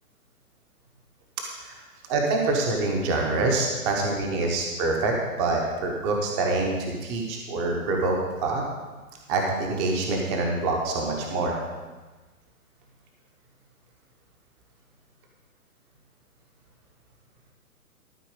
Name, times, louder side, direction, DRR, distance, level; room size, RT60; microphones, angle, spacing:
voice 1, 2.1-8.2 8.4-8.6 9.3-11.5, right 3 dB, 20° right, 1 dB, 1.0 m, -25 dB
13.0 x 4.4 x 6.6 m, 1.2 s
hypercardioid pair, 145°, 45 cm